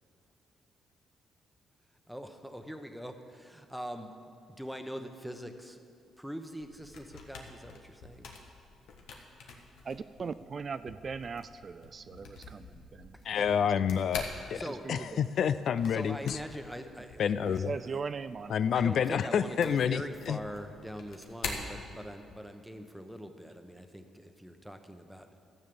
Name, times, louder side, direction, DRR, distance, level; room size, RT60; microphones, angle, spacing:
voice 1, 2.1-4.3 4.6-5.8 6.2-8.3 14.3-15.0 15.9-18.0 18.7-25.3, equal, 5° right, 6 dB, 1.0 m, -43 dB
sound 1, 6.7-22.5, left 4 dB, 80° left, 1.4 m, -46 dB
voice 2, 9.8-13.7 14.5-15.2 17.5-18.6, right 5 dB, 40° right, 13 dB, 0.3 m, -40 dB
voice 3, 13.2-14.6 14.9-16.4 17.2-17.7 18.5-20.0 20.3-20.4, left 8 dB, 65° left, 13 dB, 0.4 m, -28 dB
13.0 x 7.5 x 6.9 m, 2.4 s
cardioid pair, 90°, 0 cm